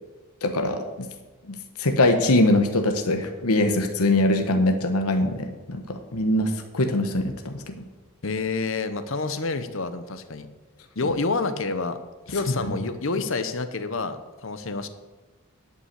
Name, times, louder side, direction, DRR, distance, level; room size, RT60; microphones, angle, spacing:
voice 1, 0.4-1.1 1.5-7.7 12.6-12.7, left 1 dB, 85° left, 6 dB, 1.1 m, -23 dB
voice 2, 8.2-10.5 11.0-12.0 12.3-14.9, left 3 dB, 60° left, 10 dB, 0.9 m, -28 dB
11.0 x 5.6 x 8.1 m, 1.2 s
head